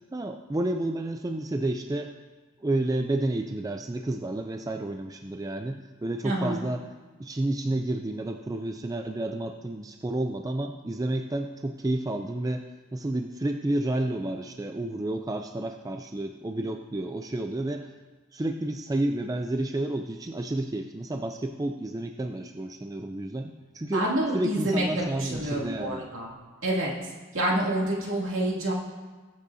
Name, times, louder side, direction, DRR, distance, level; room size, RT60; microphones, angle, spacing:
voice 1, 0.1-2.1 2.6-6.8 7.2-12.6 12.9-17.9 18.3-24.1 24.3-26.0, right 1 dB, 15° right, 5 dB, 0.4 m, -30 dB
voice 2, 6.2-6.6 23.9-26.3 26.6-26.9 27.3-28.7, right 1 dB, 70° right, -4 dB, 2.5 m, -27 dB
21.0 x 8.2 x 2.7 m, 1.3 s
head